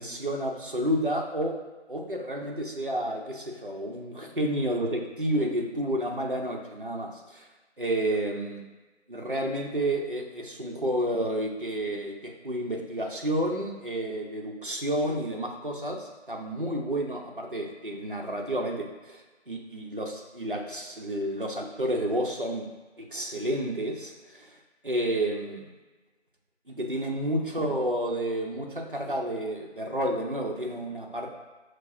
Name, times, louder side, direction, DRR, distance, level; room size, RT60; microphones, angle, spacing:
voice 1, 0.0-1.6 1.9-7.4 7.8-8.6 9.1-19.2 19.5-22.7 23.0-24.5 24.8-25.7 26.7-31.3, right 1 dB, 50° right, 0 dB, 0.5 m, -30 dB
6.1 x 2.4 x 2.5 m, 1.2 s
figure-of-eight pair, 180°, 35 cm